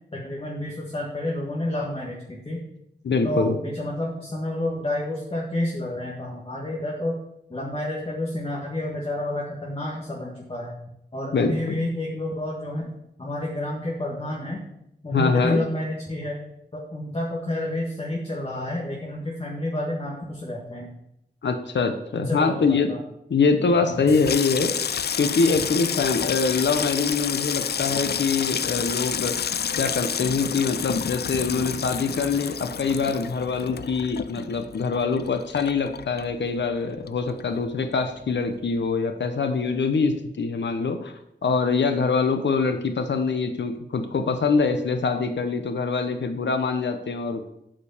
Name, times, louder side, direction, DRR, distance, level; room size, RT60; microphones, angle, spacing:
voice 1, 0.1-2.6 3.2-7.2 7.5-10.7 11.1-12.9 13.2-14.6 15.0-16.4 16.9-20.9 22.1-22.6 22.9-23.0 23.8-24.0, left 1 dB, 30° left, -4 dB, 1.7 m, -29 dB
voice 2, 3.0-3.6 11.3-11.8 15.1-15.6 21.4-22.9 23.3-24.7 25.2-41.1 41.4-47.5, left 4 dB, 85° left, 6 dB, 0.8 m, -24 dB
Water tap faucet / Sink (filling or washing), 23.9-36.8 37.1-37.7 38.0-38.3, left 8 dB, 65° left, 0.4 m, -29 dB
9.0 x 5.2 x 7.1 m, 0.81 s
wide cardioid pair, 110°, 18 cm